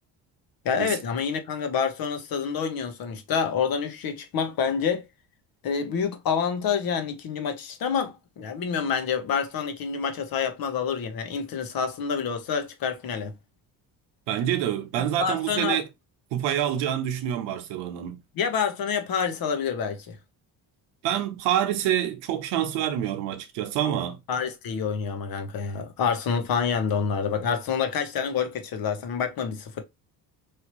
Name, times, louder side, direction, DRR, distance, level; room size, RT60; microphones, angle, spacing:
voice 1, 0.6-5.0 5.6-13.3 14.9-15.8 18.3-20.2 24.3-29.8, left 6 dB, 60° left, 0.9 m, -27 dB
voice 2, 14.3-15.8 16.3-18.2 21.0-24.2, right 11 dB, 90° right, 0.8 m, -27 dB
3.2 x 2.7 x 2.9 m
cardioid pair, 90°, 41 cm